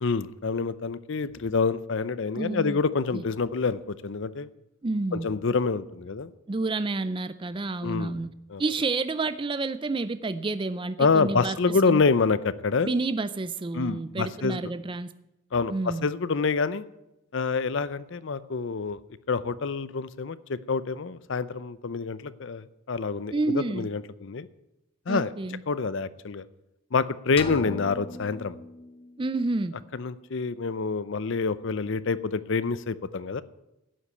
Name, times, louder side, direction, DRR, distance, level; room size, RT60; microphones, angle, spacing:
voice 1, 0.0-4.5 5.1-6.3 7.8-8.2 8.5-8.6 11.0-12.9 13.7-14.6 15.5-16.8 17.3-19.0 19.3-24.5 25.1-25.3 25.7-26.4 26.9-28.6 29.9-33.4, left 4 dB, 60° left, 16 dB, 0.6 m, -27 dB
voice 2, 2.3-2.8 3.1-3.2 4.8-5.3 6.5-8.3 8.6-12.0 12.8-15.1 15.7-16.1 23.3-23.9 25.1-25.6 29.2-29.8, right 3 dB, 25° right, 13 dB, 0.4 m, -29 dB
sound 1, 27.4-29.3, left 3 dB, 25° left, 0.9 m, -38 dB
11.0 x 8.4 x 8.3 m, 0.92 s
head